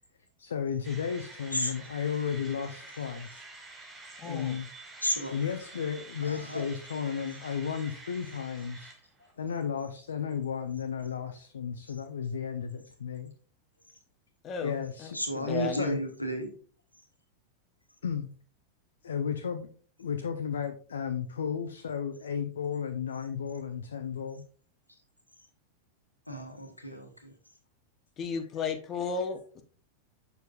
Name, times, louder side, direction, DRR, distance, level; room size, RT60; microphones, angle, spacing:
voice 1, 0.4-3.5 4.2-4.7 5.3-8.9 9.4-13.3 14.6-15.2 15.5-16.0 18.0-18.3 19.0-19.7 20.0-24.4, left 7 dB, 65° left, 6 dB, 0.6 m, -34 dB
sound 1, 0.8-9.3, right 3 dB, 15° right, 2.0 m, -48 dB
voice 2, 4.2-4.6 14.4-15.8 28.2-29.6, left 5 dB, 30° left, 6 dB, 0.9 m, -34 dB
voice 3, 5.0-5.3 6.2-6.6 11.9-12.0 15.1-16.5 26.3-27.3, equal, 85° left, 4 dB, 1.2 m, -33 dB
6.7 x 6.6 x 2.4 m, 0.42 s
figure-of-eight pair, 90°, 0 cm